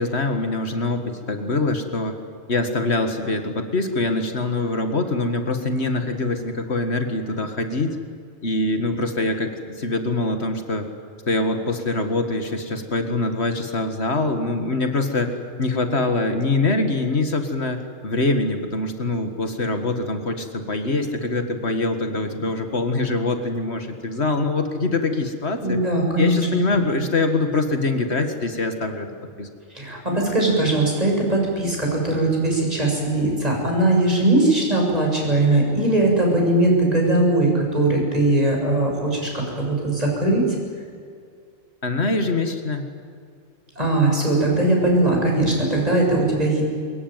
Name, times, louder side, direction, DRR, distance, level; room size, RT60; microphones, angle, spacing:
voice 1, 0.0-2.2 2.5-8.0 8.4-10.9 11.3-25.8 26.2-29.1 29.4-29.5 41.8-42.9, left 2 dB, 70° left, 6 dB, 2.2 m, -24 dB
voice 2, 25.6-26.8 29.7-40.4 43.8-46.6, right 2 dB, 35° right, -1 dB, 7.5 m, -20 dB
23.5 x 22.5 x 9.2 m, 2.2 s
omnidirectional pair, 1.1 m